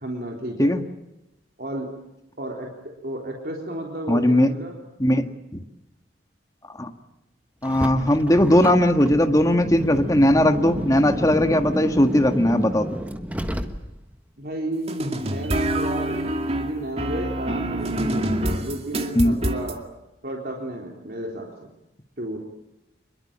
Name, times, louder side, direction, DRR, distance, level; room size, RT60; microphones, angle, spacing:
voice 1, 0.0-0.7 1.6-1.9 2.4-2.7 3.0-4.7 14.4-19.8 20.2-21.7 22.2-22.4, right 1 dB, 55° right, 0 dB, 3.7 m, -32 dB
voice 2, 4.1-4.5 5.0-5.3 5.5-5.6 6.8-6.9 7.6-13.0 19.2-19.4, left 1 dB, 20° left, 6 dB, 1.7 m, -19 dB
Car, 7.6-14.1, equal, 10° right, 1.4 m, -30 dB
sound 1, 14.9-19.8, right 1 dB, 35° right, 2.3 m, -26 dB
26.5 x 22.0 x 8.8 m, 0.93 s
head